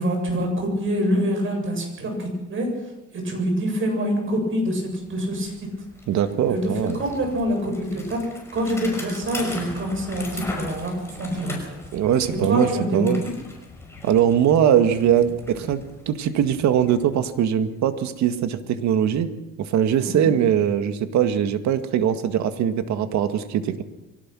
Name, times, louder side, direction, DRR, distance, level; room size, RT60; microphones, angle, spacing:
voice 1, 0.0-2.7 3.1-5.5 6.5-8.2 8.5-11.8 12.5-13.3 20.0-20.3, equal, 40° right, 3 dB, 7.6 m, -25 dB
Bicycle, 4.5-4.6 4.9-17.8, left 2 dB, 10° left, 5.7 m, -40 dB
voice 2, 6.1-7.0 11.9-13.2 14.0-19.3 19.6-23.8, right 9 dB, 65° right, 9 dB, 1.9 m, -21 dB
23.5 x 17.5 x 6.2 m, 0.97 s
cardioid pair, 125°, 31 cm